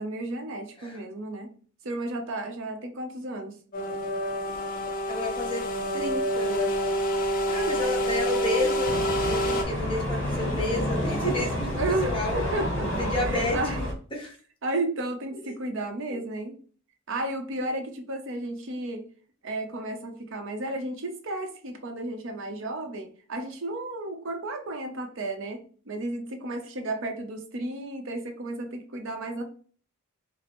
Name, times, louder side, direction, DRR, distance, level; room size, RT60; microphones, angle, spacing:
voice 1, 0.0-1.5 1.8-3.5 11.8-13.9 14.6-16.6 17.1-19.0 19.4-25.6 25.9-29.4, right 2 dB, 65° right, 5 dB, 0.7 m, -33 dB
sound 1, 3.7-9.6, equal, 40° left, 0.6 m, -27 dB
voice 2, 5.1-5.6 5.9-6.8 7.5-8.9 9.2-12.4 13.0-13.6 14.1-14.4 16.1-16.2, left 2 dB, 25° left, -2 dB, 1.1 m, -31 dB
sound 2, 8.9-13.9, left 1 dB, 60° left, 1.2 m, -29 dB
5.0 x 2.0 x 3.0 m, 0.42 s
head